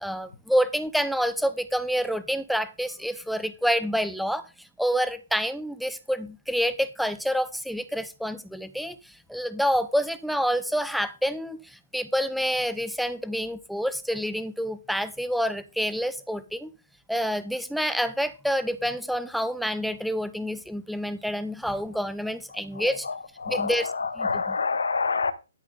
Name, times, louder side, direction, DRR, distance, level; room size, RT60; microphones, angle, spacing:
voice 1, 0.0-4.5 4.8-16.7 17.1-23.1 23.5-24.6, equal, ahead, 13 dB, 0.8 m, -28 dB
voice 2, 22.7-25.3, left 4 dB, 85° left, 13 dB, 1.2 m, -28 dB
12.5 x 7.2 x 3.7 m, 0.29 s
hypercardioid pair, 145°, 0 cm